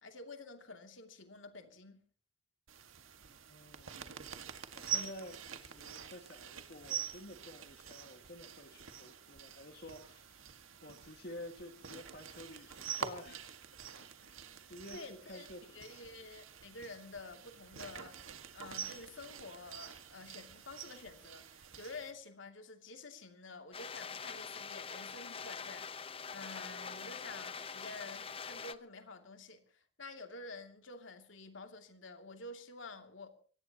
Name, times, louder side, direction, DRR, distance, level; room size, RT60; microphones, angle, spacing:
voice 1, 0.0-2.0 14.9-15.5 15.7-18.2 18.5-33.3, left 3 dB, 75° left, 2.7 m, -50 dB
sound 1, 2.7-22.1, right 7 dB, 90° right, 1.9 m, -46 dB
voice 2, 3.3-4.3 4.7-13.6 14.2-15.8 16.1-16.2, left 1 dB, 50° left, 2.0 m, -51 dB
sound 2, 23.7-28.7, left 6 dB, 30° left, 0.7 m, -44 dB
24.5 x 18.0 x 3.0 m
head